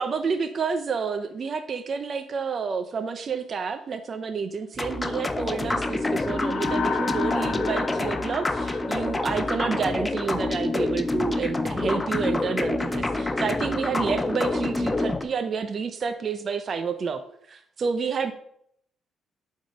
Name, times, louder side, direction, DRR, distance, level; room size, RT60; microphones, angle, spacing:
voice 1, 0.0-17.2 17.5-18.3, right 5 dB, 45° right, 8 dB, 0.5 m, -29 dB
sound 1, 4.8-15.2, left 2 dB, 20° left, 0.6 m, -27 dB
sound 2, 5.8-10.3, left 5 dB, 65° left, 0.9 m, -34 dB
7.6 x 3.6 x 5.0 m, 0.70 s
cardioid pair, 90°, 0 cm